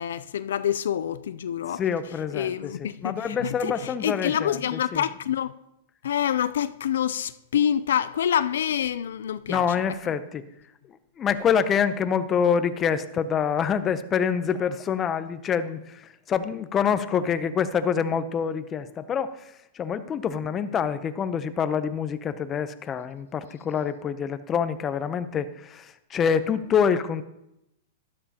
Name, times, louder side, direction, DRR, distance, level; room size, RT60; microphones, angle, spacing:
voice 1, 0.0-1.8 2.3-5.5 6.0-9.7, left 9 dB, 80° left, 0.4 m, -27 dB
voice 2, 1.7-5.0 9.5-10.4 11.2-27.2, left 7 dB, 25° left, 0.7 m, -26 dB
12.5 x 12.0 x 2.9 m
hypercardioid pair, 135°, 0 cm